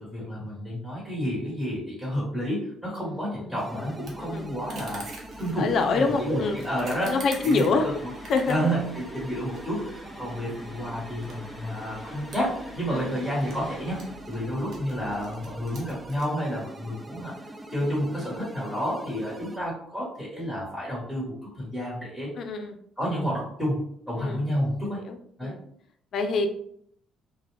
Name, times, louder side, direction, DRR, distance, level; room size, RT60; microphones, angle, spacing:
voice 1, 0.0-5.1 5.4-7.9 8.5-17.3 17.7-22.3 23.0-25.0 25.4-25.5, equal, ahead, -7 dB, 1.3 m, -30 dB
voice 2, 3.0-3.9 4.2-4.5 5.6-6.6 7.0-7.9 8.3-8.7 12.9-13.1 22.4-22.8 24.2-24.4 24.8-25.6 26.1-26.5, left 4 dB, 60° left, 6 dB, 0.4 m, -27 dB
sound 1, 3.6-19.6, right 1 dB, 20° right, 0.3 m, -43 dB
sound 2, 4.0-16.2, right 2 dB, 55° right, 0.8 m, -47 dB
sound 3, 6.0-14.2, left 1 dB, 25° left, 0.7 m, -48 dB
2.4 x 2.1 x 3.2 m, 0.67 s
supercardioid pair, 70°, 0 cm